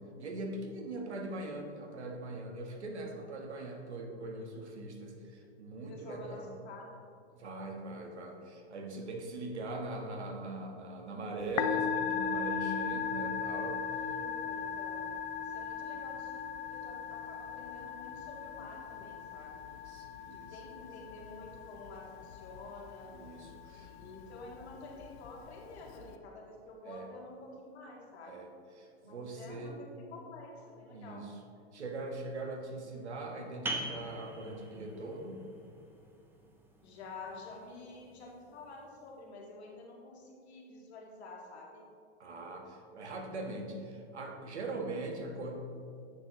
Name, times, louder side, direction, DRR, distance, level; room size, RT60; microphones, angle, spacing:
voice 1, 0.2-6.6 7.3-13.8 19.7-20.9 23.1-24.2 26.8-27.1 28.3-29.8 30.9-31.4 31.7-35.4 42.2-45.6, right 2 dB, 85° right, 2 dB, 1.4 m, -41 dB
voice 2, 5.9-6.9 14.1-15.1 15.4-19.5 20.3-23.1 23.8-28.4 29.0-31.2 36.8-41.8, left 3 dB, 70° left, -2 dB, 2.0 m, -49 dB
Musical instrument, 11.4-26.1, left 7 dB, 30° left, 0.4 m, -38 dB
sound 1, 33.7-39.0, right 1 dB, 5° right, 0.8 m, -44 dB
9.6 x 6.7 x 3.1 m, 2.4 s
hypercardioid pair, 105°, 33 cm